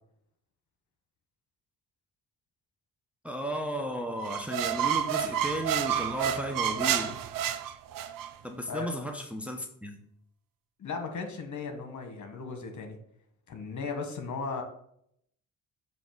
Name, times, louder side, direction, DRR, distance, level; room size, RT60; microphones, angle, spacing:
voice 1, 3.2-7.2 8.4-10.0, equal, 5° right, 4 dB, 0.9 m, -34 dB
sound 1, 4.2-8.3, right 9 dB, 70° right, 0.6 m, -29 dB
voice 2, 10.8-13.0 13.5-14.6, left 4 dB, 55° left, 5 dB, 1.6 m, -36 dB
7.0 x 3.1 x 6.0 m, 0.70 s
cardioid pair, 75°, 35 cm